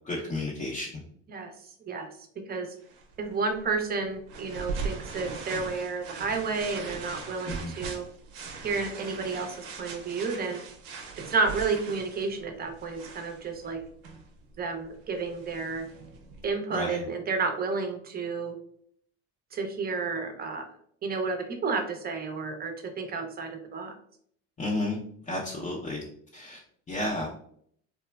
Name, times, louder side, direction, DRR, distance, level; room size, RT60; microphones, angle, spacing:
voice 1, 0.1-1.0 7.5-7.7 16.7-17.0 24.6-25.0 25.3-26.0 26.3-26.6 26.9-27.3, left 2 dB, 25° left, -4 dB, 0.5 m, -32 dB
voice 2, 1.3-2.1 2.5-2.8 3.2-8.0 8.6-10.6 11.3-13.8 14.6-15.9 16.4-18.6 19.5-20.7 21.0-23.9, right 4 dB, 30° right, 5 dB, 0.5 m, -31 dB
sound 1, 2.8-16.5, right 4 dB, 75° right, 0.6 m, -41 dB
3.2 x 2.0 x 2.2 m, 0.64 s
supercardioid pair, 100°, 32 cm